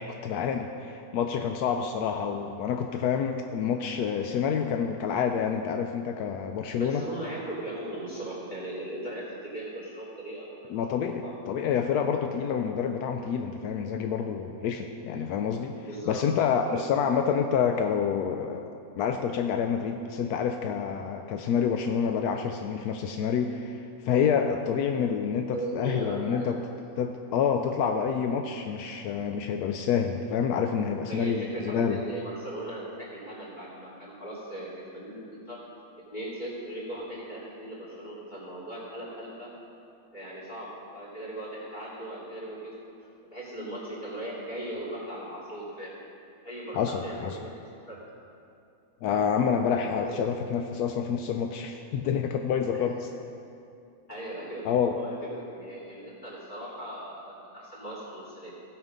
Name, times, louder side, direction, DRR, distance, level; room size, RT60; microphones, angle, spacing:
voice 1, 0.0-7.1 10.7-15.7 16.1-18.7 19.0-26.6 27.0-32.0 46.7-47.4 49.0-53.1 54.6-55.0, left 7 dB, 85° left, 5 dB, 1.1 m, -28 dB
voice 2, 6.7-11.3 15.8-16.2 16.6-16.9 25.5-26.5 31.1-35.6 36.1-39.5 40.1-42.8 43.3-45.9 46.4-47.5 47.9-48.0 49.9-50.2 52.7-52.9 54.1-54.7 54.9-58.5, right 1 dB, 30° left, -4 dB, 2.9 m, -38 dB
16.5 x 5.8 x 5.2 m, 2.6 s
omnidirectional pair, 1.6 m